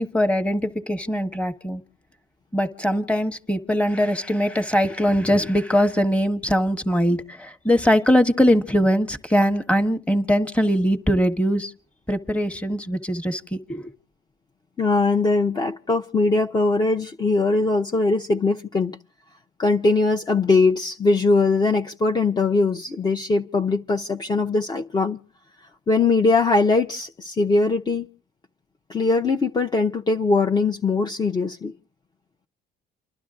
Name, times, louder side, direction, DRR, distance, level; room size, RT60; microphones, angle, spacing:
voice 1, 0.0-1.8 2.5-11.7 12.1-13.9, equal, 5° left, 1.4 m, -21 dB
voice 2, 14.8-19.0 19.6-25.2 25.9-28.1 28.9-31.7, left 3 dB, 25° left, 0.8 m, -21 dB
29.5 x 12.0 x 2.5 m
cardioid pair, 110°, 17 cm